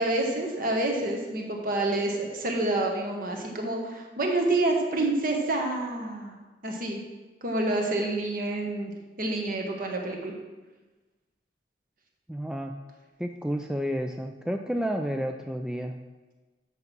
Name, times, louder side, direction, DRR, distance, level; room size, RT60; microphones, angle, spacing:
voice 1, 0.0-6.3 6.6-7.0 7.4-10.3, right 2 dB, 50° right, 1 dB, 1.5 m, -28 dB
voice 2, 12.3-12.7 13.2-16.0, equal, 5° right, 4 dB, 0.3 m, -31 dB
8.3 x 6.0 x 5.3 m, 1.2 s
head